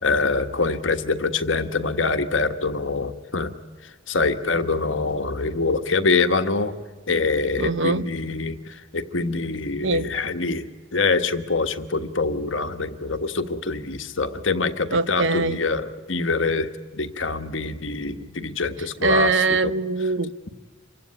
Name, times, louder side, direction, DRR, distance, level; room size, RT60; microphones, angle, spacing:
voice 1, 0.0-3.5 4.1-6.7 7.1-19.3 19.6-19.7, left 3 dB, 80° left, 1.5 m, -25 dB
voice 2, 7.6-8.1 9.8-10.1 14.9-15.6 19.0-20.5, right 3 dB, 75° right, 0.9 m, -22 dB
27.5 x 16.0 x 9.9 m
head